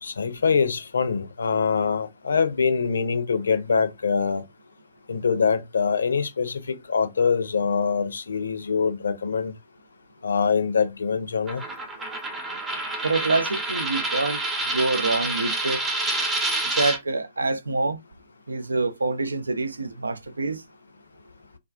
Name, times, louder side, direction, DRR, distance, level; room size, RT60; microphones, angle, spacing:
voice 1, 0.0-4.4 5.1-9.5 10.2-11.6, left 5 dB, 70° left, 0.5 m, -24 dB
Coin (dropping), 11.5-17.0, right 2 dB, 10° right, 0.6 m, -28 dB
voice 2, 13.0-15.8 16.6-18.0 18.5-20.6, right 3 dB, 75° right, 0.3 m, -26 dB
2.3 x 2.2 x 2.4 m
figure-of-eight pair, 120°, 0 cm